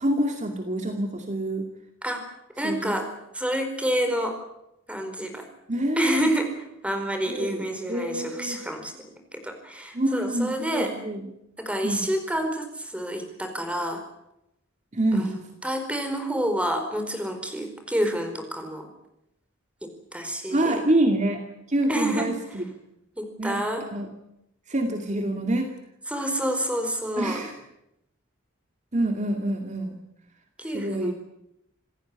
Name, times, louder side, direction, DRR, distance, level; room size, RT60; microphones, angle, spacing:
voice 1, 0.0-1.7 2.6-3.0 5.7-6.3 7.2-8.6 9.9-11.3 11.8-12.0 14.9-15.3 20.5-21.4 21.7-22.6 23.4-23.6 23.9-24.1 24.7-25.7 27.2-27.5 28.9-30.0 30.7-31.1, right 1 dB, 35° right, 4 dB, 2.3 m, -26 dB
voice 2, 2.6-3.1 3.3-4.4 4.9-5.5 6.0-8.9 9.3-10.9 11.6-14.0 15.1-18.9 19.8-20.8 21.9-22.3 23.2-23.9 26.1-27.4 30.6-31.1, right 1 dB, 5° right, 6 dB, 4.6 m, -28 dB
27.0 x 16.0 x 9.8 m, 0.84 s
head